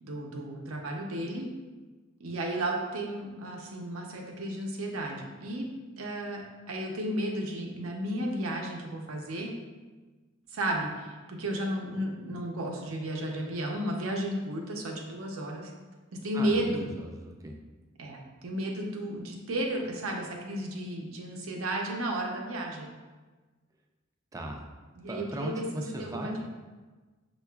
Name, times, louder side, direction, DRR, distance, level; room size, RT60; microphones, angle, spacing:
voice 1, 0.0-1.5 2.2-5.7 6.0-6.4 6.7-9.5 10.5-15.7 16.1-16.9 18.0-22.9 25.0-26.3, right 1 dB, 90° right, 0 dB, 0.6 m, -33 dB
voice 2, 16.3-17.5 24.3-24.7 25.1-26.4, right 1 dB, 15° right, 1 dB, 0.3 m, -37 dB
5.6 x 2.3 x 2.2 m, 1.3 s
head